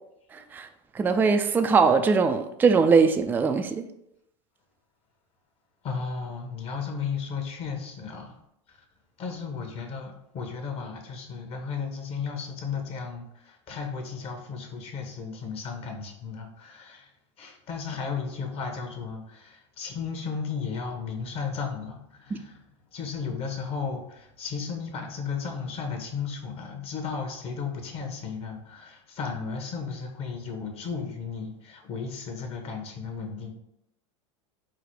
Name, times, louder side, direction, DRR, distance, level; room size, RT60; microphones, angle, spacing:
voice 1, 1.0-3.8, right 5 dB, 10° right, 0.3 m, -21 dB
voice 2, 5.8-8.3 8.7-8.8 9.2-17.1 17.4-22.6 22.9-33.5, left 5 dB, 40° left, 1.0 m, -34 dB
4.8 x 2.1 x 4.6 m
hypercardioid pair, 105°, 16 cm